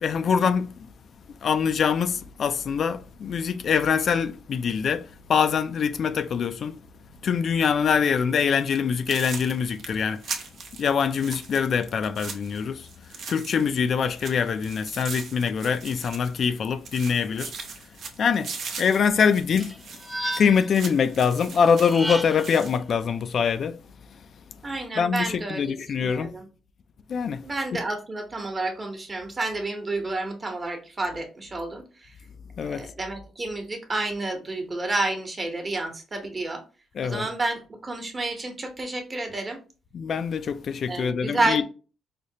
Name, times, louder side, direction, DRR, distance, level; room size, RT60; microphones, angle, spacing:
voice 1, 0.0-0.7 1.4-6.8 7.2-10.2 10.8-12.8 13.3-17.5 18.2-18.5 18.8-19.7 20.4-23.8 25.0-26.3 27.1-27.4 32.6-32.9 37.0-37.3 39.9-41.6, left 6 dB, 55° left, 0.3 m, -24 dB
sound 1, 8.6-8.8 9.1-13.8 14.1-16.6 16.9-22.8, right 5 dB, 60° right, 0.7 m, -39 dB
sound 2, 19.6-20.8 21.7-22.6, equal, ahead, 0.5 m, -33 dB
voice 2, 24.6-26.5 27.4-32.1 32.7-36.6 37.0-39.6 40.9-41.6, right 2 dB, 30° right, 1.0 m, -30 dB
4.9 x 2.1 x 2.7 m
cardioid pair, 90°, 0 cm